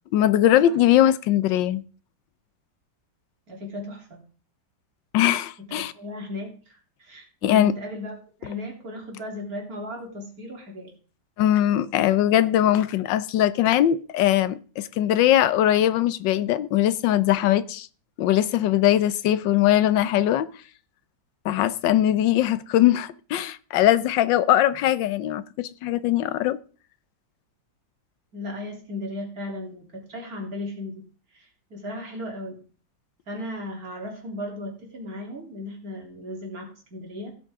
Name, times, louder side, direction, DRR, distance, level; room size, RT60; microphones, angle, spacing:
voice 1, 0.1-1.8 5.1-5.9 7.4-7.7 11.4-17.9 18.2-20.5 21.4-26.6, left 12 dB, 85° left, 1.4 m, -21 dB
voice 2, 3.5-4.2 5.6-10.9 28.3-31.1 31.3-32.6 33.3-37.3, left 1 dB, 50° right, 3.7 m, -36 dB
16.0 x 8.4 x 3.7 m
omnidirectional pair, 1.9 m